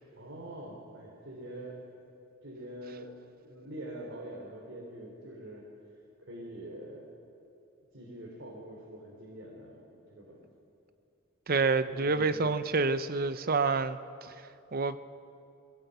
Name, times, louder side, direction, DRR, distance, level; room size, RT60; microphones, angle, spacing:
voice 1, 0.2-1.8 2.4-3.2 3.4-5.7 6.2-7.1 7.9-10.4 11.9-12.5, right 1 dB, 70° right, -3 dB, 3.2 m, -45 dB
voice 2, 11.5-14.3 14.7-15.0, right 4 dB, 45° right, 12 dB, 0.7 m, -28 dB
21.0 x 17.5 x 8.1 m, 2.7 s
head